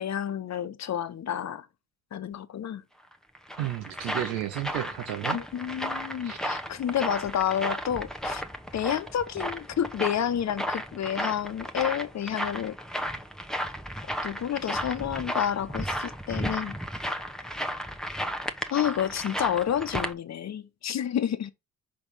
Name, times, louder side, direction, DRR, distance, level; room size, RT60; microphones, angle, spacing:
voice 1, 0.0-1.7 2.1-2.8 5.3-8.4 8.7-12.8 14.2-16.8 18.7-21.5, left 9 dB, 50° left, 1.0 m, -30 dB
sound 1, 3.1-20.1, equal, ahead, 1.0 m, -34 dB
voice 2, 3.6-5.4 6.2-6.4, right 13 dB, 90° right, 0.6 m, -32 dB
5.2 x 4.4 x 5.3 m
hypercardioid pair, 50°, 33 cm